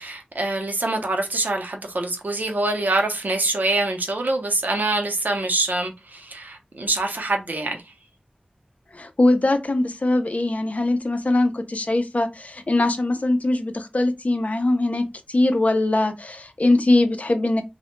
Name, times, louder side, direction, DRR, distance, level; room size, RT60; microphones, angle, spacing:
voice 1, 0.0-7.8, right 2 dB, 75° right, 0.5 m, -25 dB
voice 2, 8.9-17.6, left 2 dB, 55° left, 0.4 m, -21 dB
2.1 x 2.0 x 2.9 m
wide cardioid pair, 60°, 3 cm